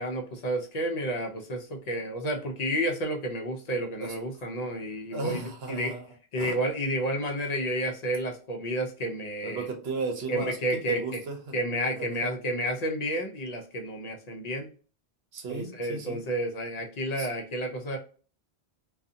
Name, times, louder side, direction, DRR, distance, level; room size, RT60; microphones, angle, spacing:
voice 1, 0.0-5.9 6.3-9.7 10.3-11.2 11.5-14.7 15.5-18.0, right 1 dB, 45° left, 3 dB, 0.6 m, -31 dB
voice 2, 5.1-6.1 6.4-6.6 9.4-11.5 12.0-12.3 15.3-16.2 17.2-17.3, right 3 dB, 65° right, 4 dB, 1.0 m, -35 dB
2.6 x 2.4 x 2.6 m, 0.38 s
omnidirectional pair, 1.1 m